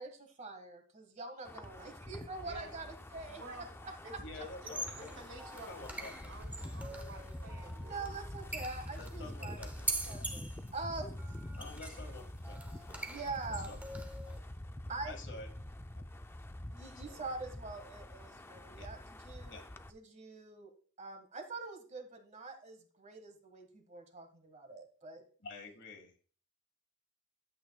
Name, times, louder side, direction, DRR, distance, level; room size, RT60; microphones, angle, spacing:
voice 1, 0.0-3.4 4.1-4.2 7.6-9.8 10.0-11.5 13.1-13.7 14.9-15.2 16.7-19.6 19.9-20.7 21.0-25.2, right 3 dB, 35° right, 6 dB, 1.6 m, -44 dB
Wind, 1.4-19.9, left 1 dB, 10° left, 0.4 m, -46 dB
voice 2, 2.4-2.9 3.3-3.7 4.0-4.7 5.0-8.2, right 1 dB, 75° right, 3 dB, 3.0 m, -51 dB
voice 3, 4.2-5.2 5.7-7.0 9.0-10.3 11.6-13.3 13.7-14.4 15.0-15.5 16.0-16.1 17.0-17.3 18.8-18.9 19.5-19.7 25.4-26.1, left 3 dB, 60° left, 5 dB, 1.8 m, -50 dB
sound 1, 4.5-14.4, right 2 dB, 10° right, 0.8 m, -44 dB
11.0 x 8.4 x 2.3 m, 0.42 s
head